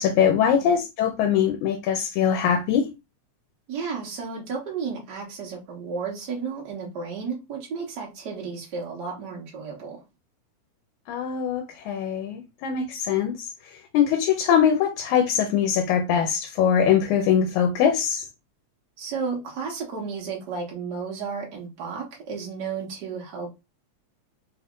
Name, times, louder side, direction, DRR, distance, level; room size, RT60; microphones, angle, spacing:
voice 1, 0.0-2.9 11.1-18.3, left 8 dB, 80° left, 2.0 m, -22 dB
voice 2, 3.7-10.0 19.0-23.5, right 5 dB, 75° right, 0.9 m, -33 dB
4.6 x 2.4 x 3.6 m
omnidirectional pair, 3.4 m